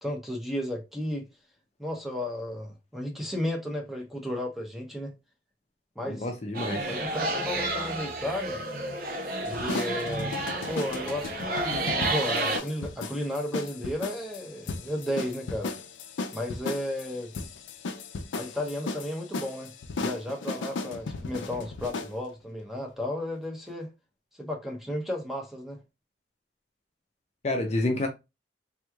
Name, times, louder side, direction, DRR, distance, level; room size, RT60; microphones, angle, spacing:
voice 1, 0.0-1.3 1.8-5.1 6.0-6.3 6.9-8.6 9.4-10.4 10.7-15.7 16.3-17.3 18.3-19.7 20.0-23.9 24.4-25.8, left 1 dB, ahead, 0.7 m, -33 dB
voice 2, 6.1-6.9 27.4-28.1, left 2 dB, 35° left, 0.5 m, -28 dB
sound 1, 6.5-12.6, right 2 dB, 50° right, 0.7 m, -31 dB
sound 2, 9.5-22.2, left 3 dB, 85° left, 0.5 m, -36 dB
3.5 x 3.0 x 2.3 m
head